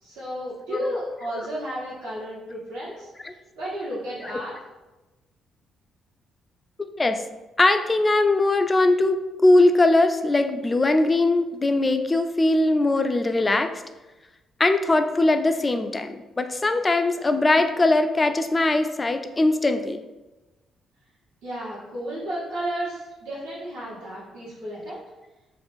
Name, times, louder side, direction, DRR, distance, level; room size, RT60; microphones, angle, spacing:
voice 1, 0.0-3.1 3.5-4.5 21.4-25.0, right 1 dB, 85° right, -10 dB, 1.1 m, -33 dB
voice 2, 6.8-7.2 7.6-13.7 14.6-20.0, left 2 dB, 30° left, 7 dB, 0.4 m, -21 dB
3.1 x 2.4 x 3.3 m, 1.1 s
hypercardioid pair, 50°, 0 cm